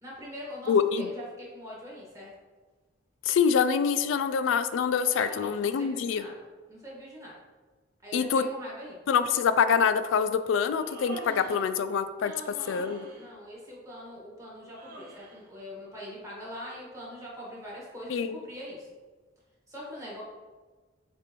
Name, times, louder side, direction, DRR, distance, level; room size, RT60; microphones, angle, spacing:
voice 1, 0.0-2.3 5.0-6.4 6.7-7.4 8.0-9.0 12.2-18.9 19.7-20.2, equal, 15° right, -5 dB, 1.4 m, -43 dB
voice 2, 0.7-1.1 3.3-6.2 8.1-8.4 9.1-12.3 12.7-13.1 18.1-18.4, left 6 dB, 80° left, 12 dB, 0.3 m, -25 dB
Human voice, 10.7-11.7 12.5-13.3 14.7-15.4, right 2 dB, 50° right, 1.5 m, -44 dB
6.6 x 2.5 x 3.0 m, 1.3 s
head